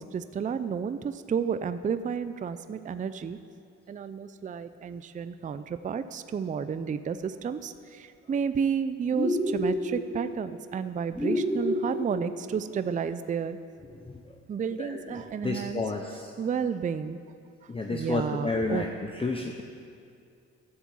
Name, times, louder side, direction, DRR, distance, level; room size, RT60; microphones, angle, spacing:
voice 1, 0.0-3.4 3.9-13.6 14.5-15.8 16.4-17.2 17.9-18.9, right 7 dB, 25° right, 11 dB, 0.4 m, -31 dB
sound 1, 9.1-10.0 11.2-12.1, left 1 dB, 5° right, 1.6 m, -28 dB
voice 2, 15.4-16.3 17.7-18.9 19.1-19.6, left 3 dB, 20° left, 3 dB, 0.7 m, -30 dB
11.0 x 7.2 x 7.4 m, 2.4 s
cardioid pair, 90°, 30 cm